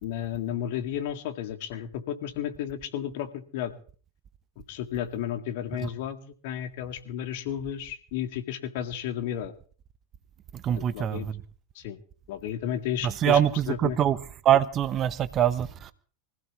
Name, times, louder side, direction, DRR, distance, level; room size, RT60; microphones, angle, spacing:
voice 1, 0.0-3.7 4.7-9.5 10.8-11.3 11.8-12.0 12.3-13.4 13.7-14.0, left 10 dB, 50° left, 1.9 m, -33 dB
voice 2, 10.6-11.3 13.0-14.2 14.4-15.9, right 10 dB, 30° right, 0.9 m, -24 dB
24.5 x 15.5 x 3.0 m
figure-of-eight pair, 85°, 0 cm